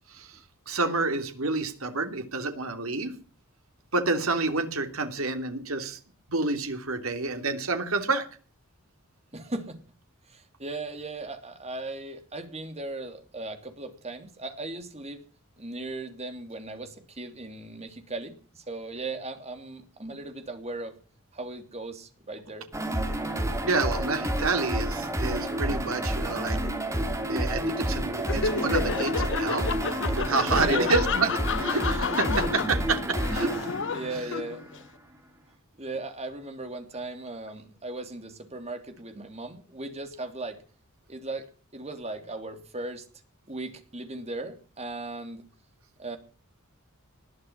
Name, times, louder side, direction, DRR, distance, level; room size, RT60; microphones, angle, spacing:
voice 1, 0.7-3.1 3.9-6.0 6.3-8.2 23.6-26.6 27.3-31.3 31.6-33.0 33.3-33.5, right 3 dB, 70° right, 6 dB, 3.1 m, -28 dB
voice 2, 9.3-9.8 10.3-15.2 15.6-20.9 21.3-22.7 30.5-30.9 33.6-34.8 35.8-40.6 41.1-41.5 41.7-43.0 43.5-45.4 46.0-46.2, right 2 dB, 30° right, 7 dB, 3.3 m, -37 dB
sound 1, 22.7-34.8, right 1 dB, 15° right, 3.0 m, -29 dB
Laughter, 28.2-34.8, left 6 dB, 60° left, 0.8 m, -31 dB
20.0 x 12.0 x 6.0 m, 0.39 s
head